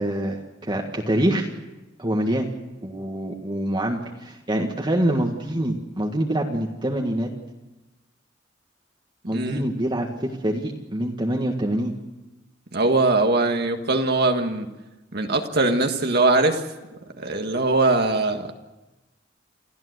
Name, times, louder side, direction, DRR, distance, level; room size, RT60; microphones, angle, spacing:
voice 1, 0.0-1.5 2.0-2.5 2.8-7.3 9.3-11.9, right 1 dB, 25° right, 0 dB, 1.8 m, -25 dB
voice 2, 9.3-9.6 12.7-14.7 15.1-16.6 17.2-18.5, right 2 dB, 55° right, 4 dB, 1.7 m, -21 dB
29.0 x 14.0 x 8.0 m, 1.1 s
head